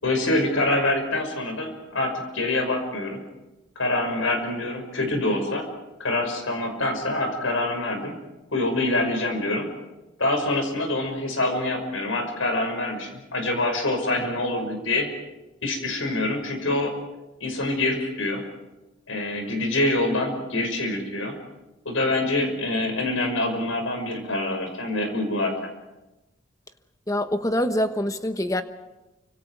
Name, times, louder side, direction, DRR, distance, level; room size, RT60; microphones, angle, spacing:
voice 1, 0.0-3.2 3.8-5.7 6.0-8.1 8.5-9.7 10.2-15.1 15.6-17.0 17.4-18.4 19.1-21.4 21.9-25.5, left 2 dB, 85° left, 5.8 m, -25 dB
voice 2, 27.1-28.6, left 1 dB, 15° left, 1.2 m, -25 dB
29.5 x 26.0 x 4.8 m
head